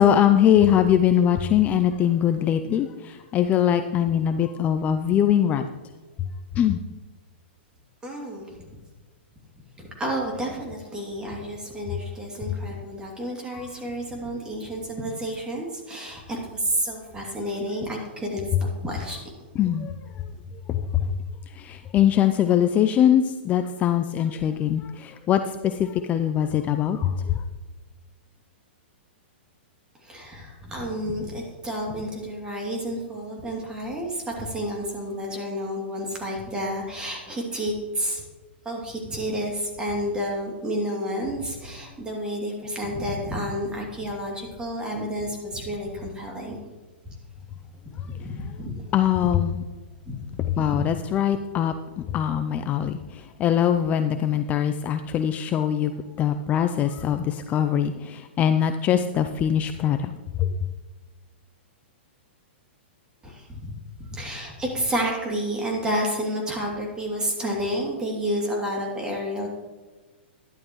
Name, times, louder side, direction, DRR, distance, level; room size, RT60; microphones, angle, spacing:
voice 1, 0.0-5.6 6.6-6.8 13.5-13.6 19.6-19.9 20.7-20.8 21.6-27.1 48.9-49.6 50.6-51.7 52.1-53.0 53.4-55.9 56.2-60.1 60.4-60.5, left 9 dB, 25° left, 9 dB, 0.5 m, -22 dB
voice 2, 8.0-8.7 9.8-19.2 30.0-38.2 38.6-46.6 48.1-48.8 49.2-49.3 50.1-50.2 50.5-50.8 63.2-63.7 64.0-69.5, equal, 15° right, -1 dB, 2.7 m, -30 dB
12.0 x 11.0 x 3.1 m, 1.2 s
hypercardioid pair, 130°, 6 cm